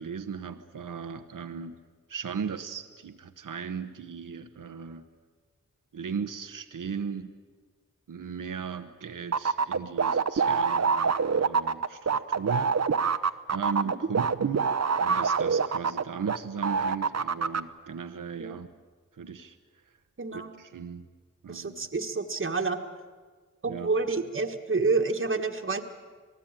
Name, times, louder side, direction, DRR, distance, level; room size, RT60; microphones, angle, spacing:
voice 1, 0.0-1.8 2.1-5.0 5.9-7.3 8.1-12.7 13.5-14.7 15.0-18.7 19.1-19.6 20.3-21.1 21.4-21.7 23.7-23.9, right 6 dB, 80° right, 7 dB, 1.1 m, -37 dB
sound 1, 9.3-16.4 16.6-17.6, right 5 dB, 55° right, 0.9 m, -25 dB
voice 2, 20.2-20.5 21.5-22.8 23.6-25.8, right 4 dB, 40° right, 3 dB, 1.6 m, -28 dB
27.0 x 18.5 x 9.0 m, 1.5 s
wide cardioid pair, 70°, 31 cm